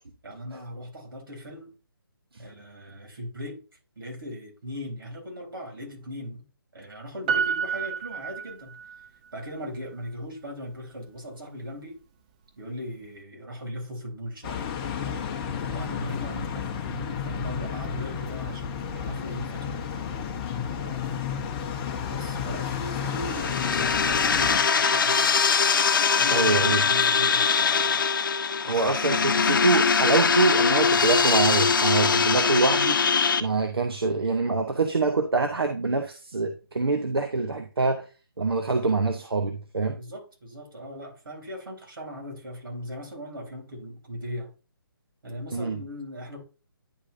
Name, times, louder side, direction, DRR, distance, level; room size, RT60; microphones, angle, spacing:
voice 1, 0.2-1.7 2.4-3.6 4.0-6.5 6.7-8.8 9.3-12.0 12.6-14.7 15.1-15.3 15.7-19.8 20.8-21.3 22.1-25.4 26.1-28.0 28.6-28.9 39.9-44.5 45.2-46.4, equal, 65° right, 3.7 m, -38 dB
Piano, 7.3-9.1 9.4-9.5, right 7 dB, 20° right, 0.6 m, -29 dB
sound 1, 14.4-24.6, left 7 dB, 20° left, 0.9 m, -32 dB
sound 2, 23.1-33.4, left 5 dB, 60° left, 0.8 m, -22 dB
voice 2, 26.3-26.8 28.7-33.0 33.4-38.1 38.4-40.0 45.5-45.8, right 3 dB, 85° right, 0.9 m, -25 dB
10.5 x 5.0 x 2.6 m
figure-of-eight pair, 155°, 12 cm